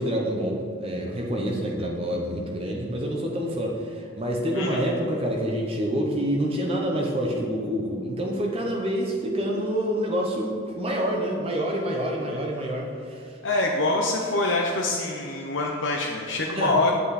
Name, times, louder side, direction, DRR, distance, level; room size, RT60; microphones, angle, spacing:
voice 1, 0.0-13.4 16.5-16.8, equal, 25° right, 0 dB, 0.9 m, -27 dB
voice 2, 4.5-4.9 13.4-16.9, left 2 dB, 60° left, -1 dB, 0.8 m, -25 dB
9.3 x 8.1 x 4.2 m, 2.2 s
head